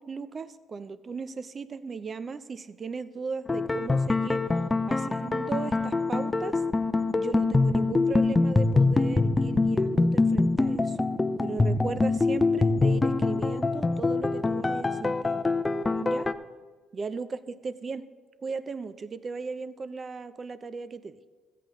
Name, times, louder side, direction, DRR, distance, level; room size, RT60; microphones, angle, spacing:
voice 1, 0.0-4.4 4.9-6.6 7.1-11.0 11.4-15.4 16.0-16.3 16.9-18.0 18.4-21.2, right 4 dB, 40° right, 13 dB, 0.6 m, -36 dB
sound 1, 3.5-16.3, left 3 dB, 20° left, 0.6 m, -24 dB
14.0 x 8.5 x 3.8 m, 1.4 s
supercardioid pair, 70°, 0 cm